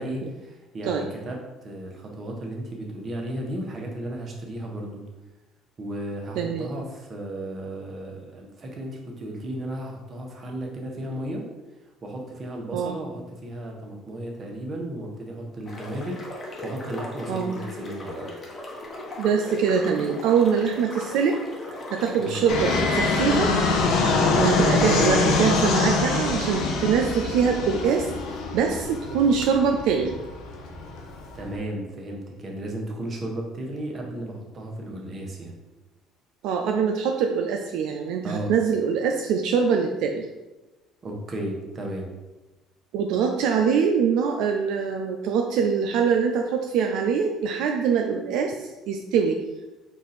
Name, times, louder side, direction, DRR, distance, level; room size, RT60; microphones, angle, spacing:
voice 1, 0.0-5.0 5.8-11.4 12.0-18.3 22.2-22.4 24.0-24.3 31.3-35.5 38.2-38.5 41.0-42.1, right 1 dB, 35° right, 0 dB, 1.1 m, -34 dB
voice 2, 6.4-6.7 12.7-13.0 17.3-17.6 19.2-21.4 21.9-23.5 24.3-28.1 28.5-30.2 36.4-40.2 42.9-49.4, right 6 dB, 75° right, 3 dB, 0.4 m, -23 dB
sound 1, 15.6-23.4, left 2 dB, 35° left, 1.0 m, -38 dB
Fixed-wing aircraft airplane, 22.5-31.5, left 3 dB, 75° left, 0.7 m, -24 dB
4.6 x 2.6 x 4.2 m, 1.1 s
supercardioid pair, 90°, 0 cm